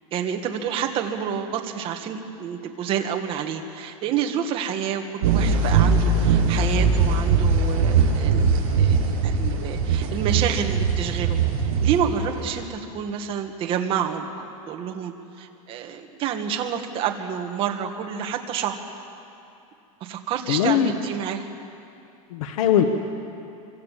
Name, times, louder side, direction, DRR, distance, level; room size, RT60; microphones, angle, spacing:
voice 1, 0.1-11.4 11.8-18.8 20.0-21.5, right 8 dB, 30° right, 4 dB, 1.9 m, -28 dB
sound 1, 5.2-12.6, right 4 dB, 75° right, 7.7 m, -21 dB
voice 2, 20.5-20.9 22.3-22.8, left 10 dB, 75° left, 5 dB, 1.6 m, -20 dB
26.0 x 25.5 x 7.5 m, 2.6 s
supercardioid pair, 170°, 18 cm